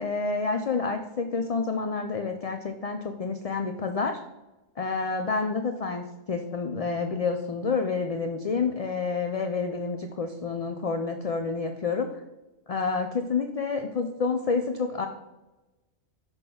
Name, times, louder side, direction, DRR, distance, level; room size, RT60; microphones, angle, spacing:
voice 1, 0.0-4.2 4.8-12.2 12.7-15.1, left 4 dB, 70° left, 6 dB, 0.3 m, -29 dB
5.9 x 3.6 x 5.3 m, 1.0 s
omnidirectional pair, 1.2 m